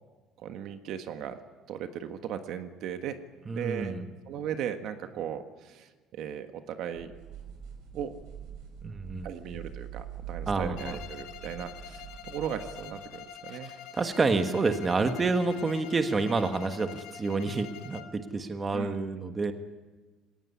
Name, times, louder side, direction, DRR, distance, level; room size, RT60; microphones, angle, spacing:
voice 1, 0.4-1.4 1.7-3.2 3.5-4.0 4.3-7.1 7.9-8.1 9.2-13.7 18.7-18.9, right 9 dB, 60° right, 7 dB, 1.5 m, -37 dB
voice 2, 3.5-4.1 8.8-9.3 10.5-11.0 13.6-19.5, right 3 dB, 20° right, 7 dB, 1.5 m, -29 dB
sound 1, 6.9-12.9, right 8 dB, 80° right, 6.6 m, -44 dB
Bowed string instrument, 10.8-18.2, left 9 dB, 80° left, 1.8 m, -45 dB
21.5 x 18.0 x 9.8 m, 1.3 s
cardioid pair, 140°, 0 cm